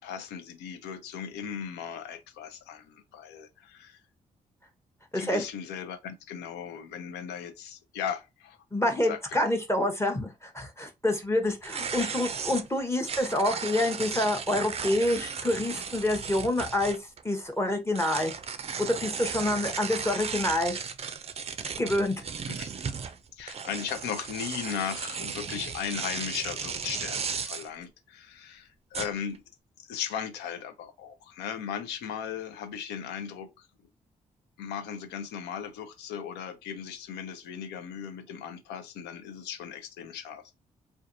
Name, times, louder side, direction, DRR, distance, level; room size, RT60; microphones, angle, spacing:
voice 1, 0.0-4.0 5.1-8.6 9.1-9.2 12.0-12.1 22.5-22.7 23.4-29.4 29.8-33.7 34.6-40.5, left 8 dB, 80° left, 0.4 m, -37 dB
voice 2, 8.7-17.0 17.2-18.3 18.8-20.8 21.8-22.2, left 1 dB, 15° left, 0.7 m, -27 dB
sound 1, 11.6-17.2 17.9-27.7 28.9-29.4, right 6 dB, 35° right, 0.4 m, -35 dB
2.6 x 2.1 x 2.5 m
hypercardioid pair, 40°, 17 cm